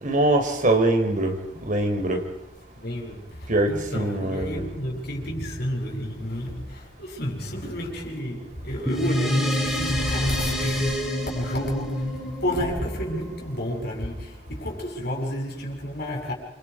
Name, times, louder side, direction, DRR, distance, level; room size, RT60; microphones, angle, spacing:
voice 1, 0.0-1.4 1.6-2.2 3.5-4.6, right 1 dB, 45° right, 3.6 m, -22 dB
voice 2, 2.7-16.3, equal, 55° left, 7.6 m, -30 dB
sound 1, 8.9-13.7, equal, ahead, 6.8 m, -27 dB
28.5 x 26.0 x 4.9 m
head